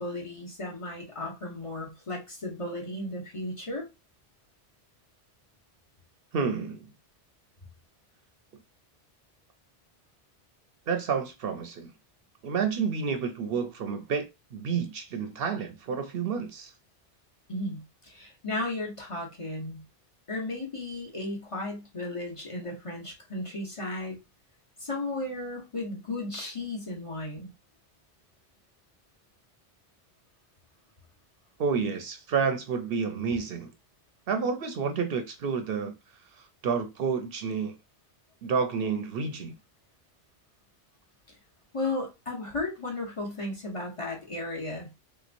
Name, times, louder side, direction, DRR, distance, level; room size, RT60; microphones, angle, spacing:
voice 1, 0.0-3.8 17.5-19.8 20.3-24.2 24.8-27.5 41.7-44.9, left 2 dB, 30° left, 1.0 m, -35 dB
voice 2, 6.3-6.9 10.9-11.9 12.4-16.7 31.6-33.7 34.3-35.9 36.3-37.8 38.4-39.5, right 6 dB, 65° right, 0.8 m, -30 dB
3.5 x 2.9 x 2.5 m
omnidirectional pair, 1.1 m